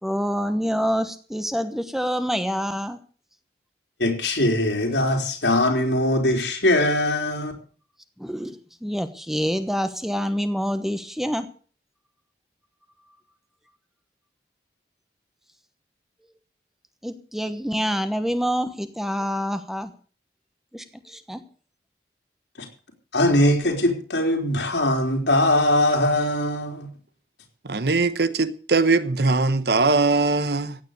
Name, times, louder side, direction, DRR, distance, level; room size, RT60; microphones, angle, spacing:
voice 1, 0.0-3.0 8.2-11.5 17.0-19.9 20.7-21.4, equal, ahead, 1.1 m, -26 dB
voice 2, 4.0-7.5 22.6-22.7 23.1-26.9, left 1 dB, 85° left, 3.8 m, -21 dB
voice 3, 27.6-30.8, right 3 dB, 65° right, 1.1 m, -21 dB
16.0 x 9.4 x 6.7 m
head